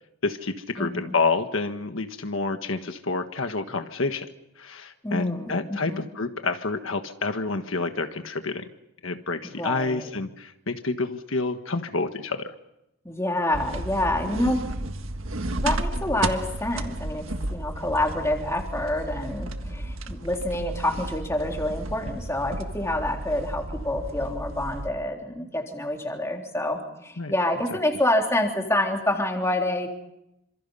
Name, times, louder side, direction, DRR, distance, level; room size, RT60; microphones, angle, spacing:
voice 1, 0.2-4.3 4.6-8.7 9.0-12.5 27.2-27.3, left 3 dB, 70° left, 7 dB, 1.5 m, -28 dB
voice 2, 0.8-1.1 5.0-6.0 9.6-10.1 13.1-14.7 15.6-29.9, left 1 dB, 15° left, 1 dB, 3.6 m, -27 dB
sound 1, 13.5-24.9, right 1 dB, 70° right, 1.7 m, -33 dB
28.5 x 26.5 x 5.6 m, 0.86 s
head